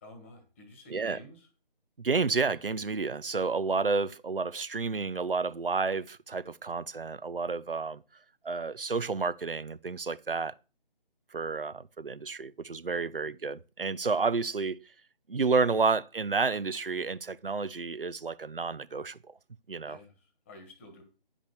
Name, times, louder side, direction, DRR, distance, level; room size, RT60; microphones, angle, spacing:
voice 1, 0.0-1.5 12.9-13.0 19.8-21.0, left 1 dB, 15° left, 1.4 m, -51 dB
voice 2, 2.0-8.0 8.4-10.5 11.3-14.9 15.3-19.2 19.7-20.0, right 4 dB, 65° right, 0.8 m, -30 dB
10.5 x 5.2 x 6.6 m
figure-of-eight pair, 155°, 30 cm